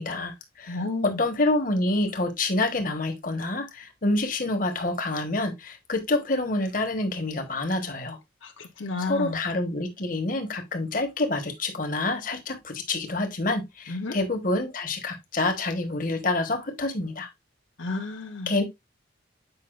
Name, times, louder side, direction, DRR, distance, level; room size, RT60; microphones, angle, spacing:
voice 1, 0.0-8.2 9.0-17.3 18.5-18.6, left 2 dB, 45° left, 1.3 m, -27 dB
voice 2, 0.7-1.2 8.6-9.4 13.9-14.2 17.8-18.5, left 2 dB, 85° left, 1.0 m, -31 dB
8.3 x 5.4 x 2.5 m
head